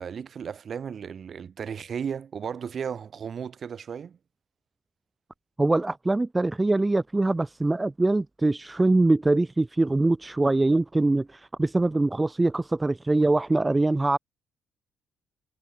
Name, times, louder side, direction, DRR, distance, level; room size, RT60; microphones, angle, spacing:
voice 1, 0.0-4.2, right 7 dB, 55° right, 5.7 m, -35 dB
voice 2, 5.6-14.2, right 2 dB, 20° right, 0.7 m, -23 dB
supercardioid pair, 55°, 0 cm